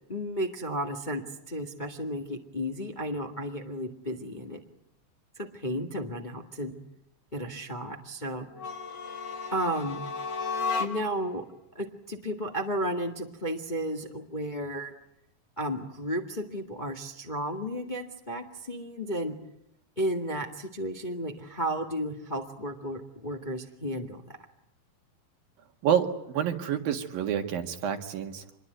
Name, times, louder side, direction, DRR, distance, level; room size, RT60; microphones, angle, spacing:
voice 1, 0.1-4.6 5.4-6.8 7.3-8.5 9.5-10.1 10.8-11.4 11.7-14.9 15.6-19.4 20.0-24.4, equal, 20° left, 4 dB, 1.3 m, -33 dB
sound 1, 8.5-11.3, left 4 dB, 50° left, 2.6 m, -33 dB
voice 2, 25.8-28.4, right 8 dB, 80° right, 5 dB, 3.7 m, -28 dB
26.5 x 22.0 x 9.3 m, 0.76 s
omnidirectional pair, 4.1 m